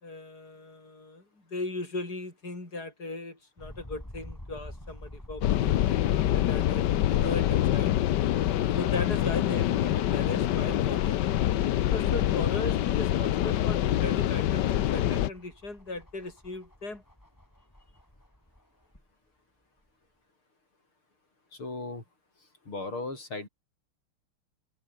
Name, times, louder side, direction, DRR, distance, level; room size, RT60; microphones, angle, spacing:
voice 1, 0.0-1.2 1.5-6.8 7.1-7.9 8.8-11.2 11.9-17.0, left 2 dB, 45° left, 7.2 m, -37 dB
sound 1, 3.6-8.6 9.1-9.2 10.5-19.1 19.8-19.9, left 1 dB, 10° left, 5.4 m, -49 dB
sound 2, 5.4-15.3, left 12 dB, 65° left, 1.3 m, -25 dB
voice 2, 21.5-22.0 22.7-23.5, left 2 dB, 80° left, 7.8 m, -36 dB
omnidirectional pair, 2.3 m